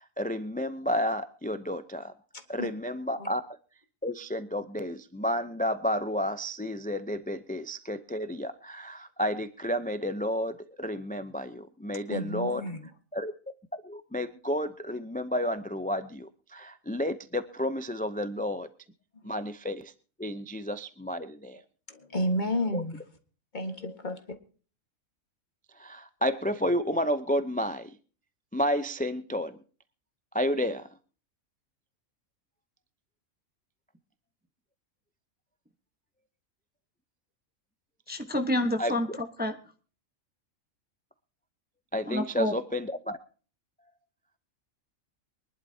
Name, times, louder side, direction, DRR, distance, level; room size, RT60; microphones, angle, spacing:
voice 1, 0.0-2.1 2.5-3.4 4.0-12.6 13.1-13.3 13.8-18.7 19.2-19.9 20.2-21.6 22.7-22.8 25.8-28.0 28.5-29.6 30.3-30.9 38.8-39.2 41.9-43.2, equal, 10° left, 0.4 m, -31 dB
voice 2, 12.1-12.9 21.9-23.0 23.5-24.2, equal, 35° left, 1.7 m, -31 dB
voice 3, 38.1-39.5 42.1-42.6, left 1 dB, 10° right, 1.0 m, -29 dB
24.0 x 11.0 x 2.8 m
omnidirectional pair, 1.4 m